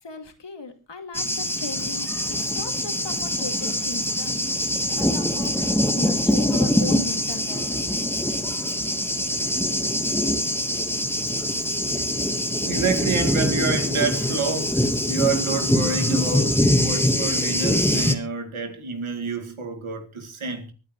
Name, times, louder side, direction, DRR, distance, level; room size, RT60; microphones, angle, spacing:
voice 1, 0.0-4.5 4.9-8.1, left 4 dB, 60° left, 2.4 m, -37 dB
Thunder, 1.1-18.1, left 1 dB, 5° left, 1.4 m, -23 dB
voice 2, 12.6-20.7, right 4 dB, 80° right, 2.2 m, -28 dB
24.0 x 8.6 x 3.1 m
cardioid pair, 60°, 48 cm